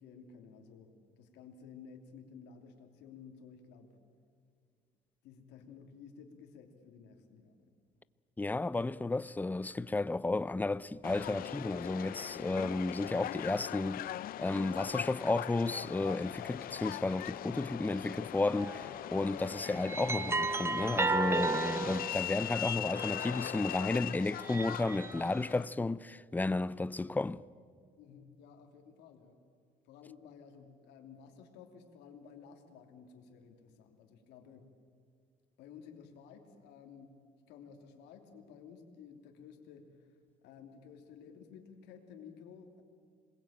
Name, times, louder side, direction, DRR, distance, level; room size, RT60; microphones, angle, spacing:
voice 1, 0.0-3.9 5.2-7.7 28.0-29.4 29.8-34.8 35.6-40.1 40.4-42.8, left 6 dB, 90° left, 3.1 m, -54 dB
voice 2, 8.4-14.0 14.4-27.4, left 2 dB, 10° left, 0.6 m, -33 dB
Subway metro underground, 11.0-25.7, left 13 dB, 60° left, 0.6 m, -41 dB
sound 1, 18.6-18.9 19.6-23.7 24.3-25.4, right 3 dB, 15° right, 1.0 m, -35 dB
27.5 x 21.0 x 8.9 m
cardioid pair, 110°, 17 cm